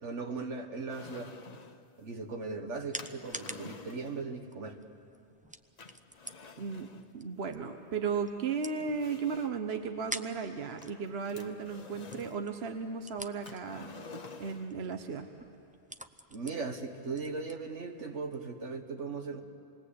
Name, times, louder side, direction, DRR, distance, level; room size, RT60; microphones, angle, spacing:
voice 1, 0.0-1.3 2.0-4.8 16.3-19.4, right 4 dB, 80° right, 4 dB, 1.9 m, -38 dB
sound 1, 0.9-1.9 3.0-4.3 5.8-7.1 8.1-8.2 8.8-9.7 10.8-12.4 13.4-14.8, left 4 dB, 40° left, 0.9 m, -49 dB
sound 2, 2.1-18.5, right 1 dB, 10° right, 0.6 m, -49 dB
voice 2, 6.6-6.9 7.1-13.9 14.4-15.3, right 5 dB, 60° right, 6 dB, 1.2 m, -35 dB
27.5 x 20.5 x 8.5 m, 2.7 s
omnidirectional pair, 1.2 m